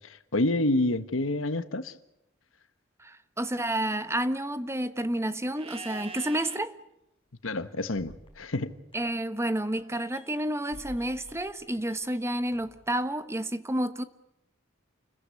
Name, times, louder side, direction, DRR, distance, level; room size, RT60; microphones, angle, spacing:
voice 1, 0.0-1.9 7.4-8.7, left 2 dB, 75° left, 1.4 m, -28 dB
voice 2, 3.0-6.7 8.9-14.0, right 1 dB, 15° right, 1.1 m, -30 dB
Livestock farm animals working animals, 5.5-6.6 9.4-10.4, right 3 dB, 30° right, 2.4 m, -44 dB
sound 1, 8.0-9.5 9.9-13.0, equal, 25° left, 4.6 m, -52 dB
29.5 x 15.0 x 9.7 m
head